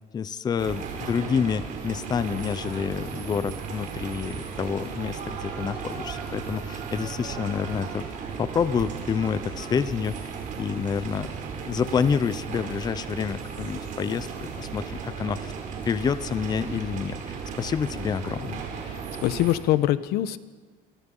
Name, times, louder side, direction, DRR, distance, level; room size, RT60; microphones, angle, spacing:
voice 1, 0.1-8.0 8.4-10.3 10.6-11.3 11.6-15.5 15.9-18.6, left 6 dB, 25° left, 14 dB, 0.7 m, -28 dB
sound 1, 0.6-19.6, right 6 dB, 50° right, 5.0 m, -35 dB
voice 2, 18.8-20.4, left 14 dB, 80° left, 14 dB, 1.2 m, -24 dB
28.5 x 24.0 x 5.6 m, 1.5 s
cardioid pair, 160°, 16 cm